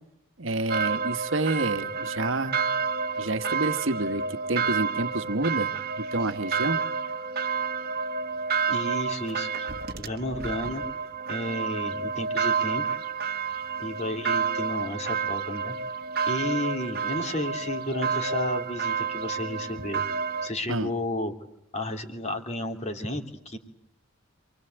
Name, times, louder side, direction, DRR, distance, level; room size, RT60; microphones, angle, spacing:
voice 1, 0.4-2.6 3.2-5.7 6.1-6.8 20.7-20.9, right 2 dB, 65° right, 10 dB, 1.4 m, -28 dB
sound 1, 0.7-20.5, right 5 dB, 45° right, 1.3 m, -30 dB
voice 2, 8.7-9.7 10.0-10.8 11.3-13.0 13.8-15.7 16.3-20.0 20.4-21.3 21.7-23.6, left 1 dB, 35° left, 4 dB, 3.2 m, -32 dB
28.0 x 21.5 x 8.0 m, 0.84 s
head